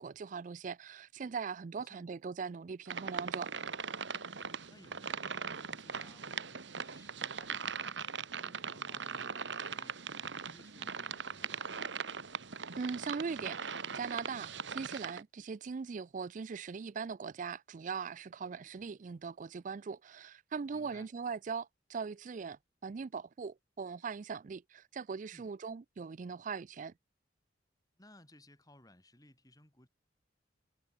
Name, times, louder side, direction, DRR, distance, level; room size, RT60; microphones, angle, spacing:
voice 1, 0.0-3.5 12.8-26.9, right 5 dB, 40° right, 0.4 m, -40 dB
sound 1, 2.9-15.2, right 6 dB, 70° right, 1.4 m, -40 dB
voice 2, 4.7-8.0 8.3-12.0 20.7-21.1 25.3-25.5 28.0-29.9, left 1 dB, 20° left, 5.3 m, -60 dB
head